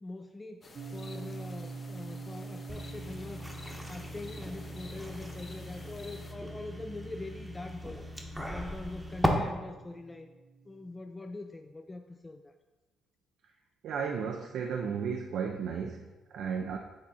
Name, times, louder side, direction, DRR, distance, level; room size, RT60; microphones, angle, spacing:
voice 1, 0.0-3.5 3.9-8.0 8.5-10.3 10.7-12.5, left 2 dB, 20° left, 5 dB, 0.3 m, -43 dB
sound 1, 0.6-6.3, left 3 dB, 40° left, 0.8 m, -52 dB
sound 2, 0.7-10.9, right 4 dB, 50° right, 0.8 m, -46 dB
sound 3, 2.7-9.3, equal, 5° right, 0.9 m, -38 dB
voice 2, 13.8-16.8, right 6 dB, 75° right, 3 dB, 0.4 m, -34 dB
7.5 x 3.5 x 4.1 m, 1.2 s
cardioid pair, 80°, 0 cm